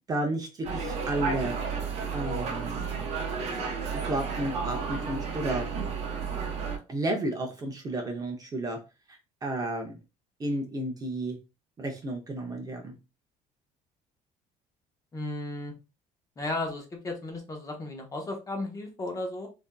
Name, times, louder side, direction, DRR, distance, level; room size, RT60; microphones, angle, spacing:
voice 1, 0.1-1.5 2.1-3.1 3.9-5.7 6.9-8.8 9.1-10.0 10.4-11.4 11.8-13.0, right 1 dB, 25° right, 2 dB, 0.6 m, -32 dB
sound 1, 0.6-6.8, right 5 dB, 50° right, 0.9 m, -32 dB
voice 2, 15.1-15.7 16.4-19.5, left 2 dB, 25° left, 2 dB, 0.8 m, -34 dB
3.4 x 2.5 x 2.2 m, 0.29 s
cardioid pair, 130°, 14 cm